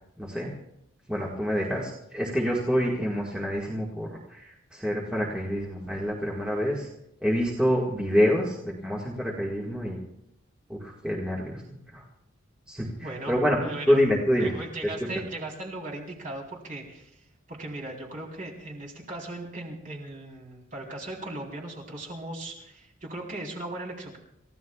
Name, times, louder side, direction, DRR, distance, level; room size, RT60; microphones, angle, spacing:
voice 1, 0.2-0.5 1.1-6.9 7.2-10.0 10.7-12.0 12.7-13.6 13.9-14.5, equal, 5° right, -4 dB, 1.7 m, -27 dB
voice 2, 13.0-13.4 13.6-14.0 14.4-24.2, right 2 dB, 40° right, -1 dB, 3.7 m, -38 dB
29.0 x 15.0 x 2.4 m, 0.79 s
head